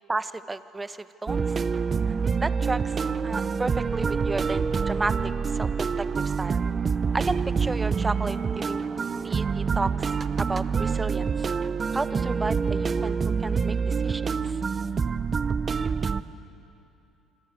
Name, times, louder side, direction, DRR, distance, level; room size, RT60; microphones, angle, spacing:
voice 1, 0.1-1.4 2.1-2.2 2.4-3.0 3.2-5.7 6.0-6.6 7.1-8.8 9.2-10.1 10.4-11.5 11.9-14.6, right 3 dB, 20° right, 13 dB, 1.2 m, -32 dB
sound 1, 1.3-16.2, right 5 dB, 40° right, 0.9 m, -26 dB
26.0 x 26.0 x 8.2 m, 2.7 s
hypercardioid pair, 60°, 0 cm